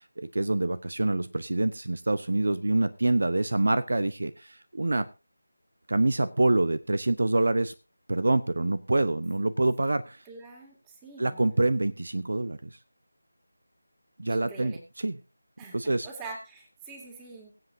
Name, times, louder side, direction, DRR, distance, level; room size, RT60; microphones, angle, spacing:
voice 1, 0.0-5.1 5.9-7.7 8.1-10.2 11.2-12.7 14.2-15.2 15.7-16.1, right 2 dB, 60° right, 14 dB, 0.8 m, -26 dB
voice 2, 10.3-10.8 11.0-11.5 14.3-14.8 15.6-17.5, right 3 dB, 10° right, 3 dB, 2.5 m, -44 dB
23.0 x 7.9 x 2.7 m, 0.28 s
figure-of-eight pair, 165°, 0 cm